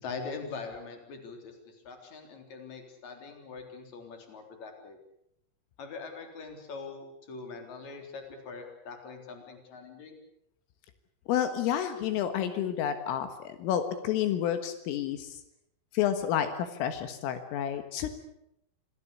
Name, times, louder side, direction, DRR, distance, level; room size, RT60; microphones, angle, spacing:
voice 1, 0.0-1.5 1.8-5.0 5.8-10.2, left 4 dB, 35° left, 4 dB, 4.5 m, -42 dB
voice 2, 11.3-15.4 15.9-18.1, left 10 dB, 80° left, 9 dB, 4.1 m, -30 dB
27.0 x 17.5 x 8.5 m, 0.80 s
omnidirectional pair, 5.8 m